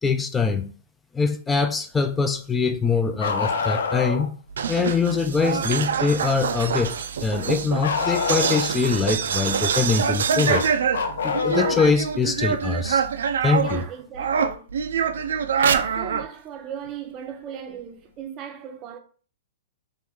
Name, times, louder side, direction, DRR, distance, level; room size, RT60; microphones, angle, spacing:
voice 1, 0.0-0.7 1.1-4.3 4.7-7.0 7.2-10.7 11.2-13.0 13.4-13.9, left 4 dB, 15° left, 0.4 m, -23 dB
Bark, 3.2-4.3 7.8-8.9 10.5-12.0 13.6-13.7 15.7-15.8 16.9-17.0, left 5 dB, 80° left, 0.5 m, -26 dB
sound 1, 4.5-13.8 14.1-16.3, right 7 dB, 80° right, 0.3 m, -25 dB
voice 2, 13.6-14.7 15.6-19.0, right 8 dB, 35° right, 0.6 m, -37 dB
2.9 x 2.5 x 3.5 m
hypercardioid pair, 125°, 0 cm